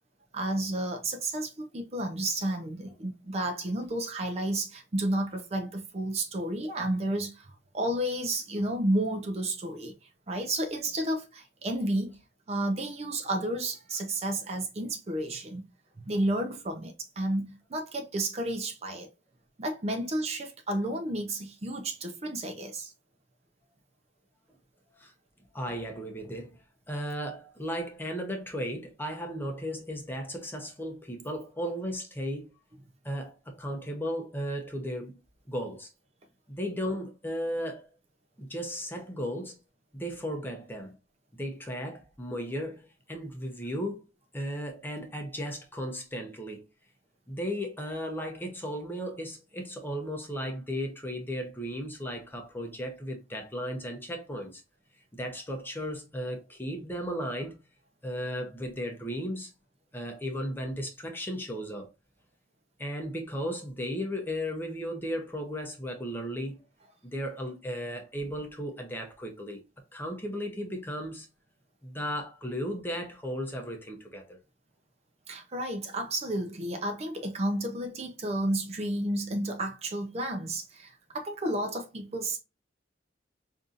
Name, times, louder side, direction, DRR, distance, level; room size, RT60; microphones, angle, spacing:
voice 1, 0.3-9.9 10.3-12.2 12.5-15.6 16.0-19.1 19.6-22.9 75.3-82.4, right 1 dB, 35° right, 0.6 m, -31 dB
voice 2, 25.5-26.6 26.9-32.5 33.0-35.2 35.5-35.9 36.5-37.9 38.4-39.6 39.9-41.0 41.3-44.0 44.3-46.6 47.3-54.6 55.1-57.6 58.0-59.5 59.9-61.9 62.8-66.6 67.0-69.6 69.9-71.3 71.8-74.4, equal, 10° left, 0.8 m, -35 dB
5.3 x 2.7 x 2.4 m
head